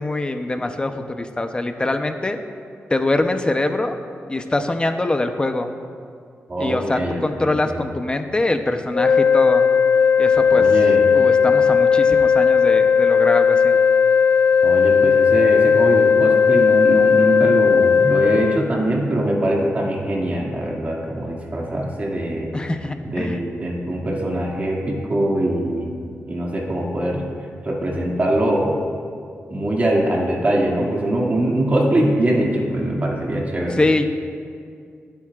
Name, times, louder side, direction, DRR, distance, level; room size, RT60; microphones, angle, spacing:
voice 1, 0.0-2.4 2.9-4.0 4.3-5.7 6.6-9.6 10.2-10.7 11.1-13.8 22.5-23.4 33.8-34.1, left 2 dB, 20° left, 6 dB, 0.8 m, -23 dB
voice 2, 6.5-7.8 10.5-11.1 14.6-22.5 23.0-27.2 27.6-28.8 29.5-33.8, right 1 dB, 35° right, -2 dB, 2.3 m, -22 dB
sound 1, 8.9-18.6, left 6 dB, 45° left, 0.3 m, -16 dB
23.5 x 9.2 x 2.5 m, 2.3 s
wide cardioid pair, 110°, 5 cm